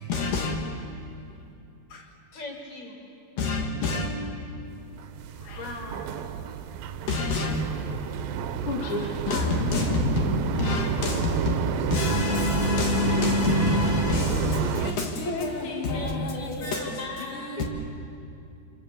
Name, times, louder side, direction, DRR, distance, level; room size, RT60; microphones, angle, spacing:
voice 1, 0.1-0.5 3.4-4.1 7.1-7.6 9.3-10.1 10.6-11.1 11.9-14.6 15.4-15.5 15.9-16.3 17.4-17.6, left 3 dB, 70° left, 3.4 m, -26 dB
voice 2, 2.3-3.0 5.5-6.0 9.3-9.7 15.9-17.6, left 2 dB, 20° left, 4.0 m, -39 dB
sound 1, 4.9-14.9, right 7 dB, 85° right, 2.7 m, -29 dB
voice 3, 8.7-9.2 15.2-17.1 17.6-17.7, left 2 dB, 45° left, 2.1 m, -33 dB
27.0 x 25.5 x 7.2 m
omnidirectional pair, 4.1 m